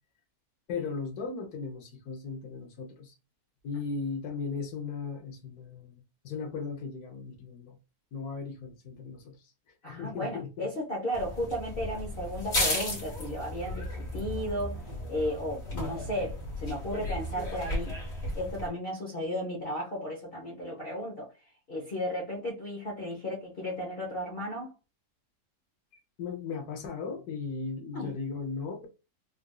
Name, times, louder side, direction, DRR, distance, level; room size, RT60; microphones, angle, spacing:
voice 1, 0.7-3.1 3.6-7.8 8.1-9.4 9.8-10.7 14.9-15.0 26.2-28.9, left 5 dB, 75° left, 1.2 m, -37 dB
voice 2, 9.8-13.9 14.1-17.9 18.3-21.3 21.7-24.7 27.9-28.2, equal, 45° left, 0.9 m, -34 dB
sound 1, 11.1-18.7, left 1 dB, 60° left, 1.8 m, -34 dB
3.9 x 2.4 x 2.2 m
omnidirectional pair, 1.6 m